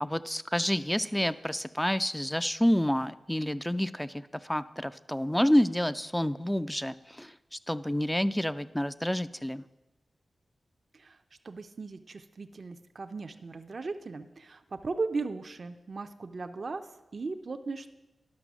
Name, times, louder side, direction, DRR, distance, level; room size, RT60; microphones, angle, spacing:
voice 1, 0.0-9.7, equal, 5° left, 13 dB, 0.3 m, -29 dB
voice 2, 11.4-16.8 17.1-17.9, right 3 dB, 55° right, 7 dB, 0.5 m, -37 dB
10.5 x 6.1 x 6.0 m, 1.0 s
wide cardioid pair, 75°, 0 cm